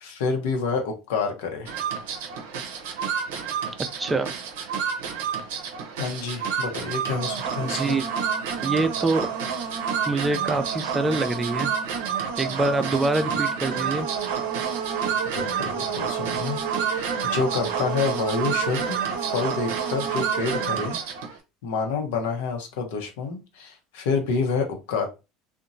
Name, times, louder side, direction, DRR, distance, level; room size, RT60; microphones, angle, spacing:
voice 1, 0.0-1.7 6.0-8.0 15.4-16.6 16.9-21.0 21.6-25.1, left 5 dB, 75° left, 0.7 m, -28 dB
sound 1, 1.7-21.4, right 7 dB, 75° right, 0.5 m, -28 dB
voice 2, 4.0-4.3 7.6-8.1 8.6-9.3 10.1-11.7 12.4-14.1, right 2 dB, 20° right, 0.4 m, -25 dB
2.8 x 2.1 x 2.5 m
hypercardioid pair, 80°, 0 cm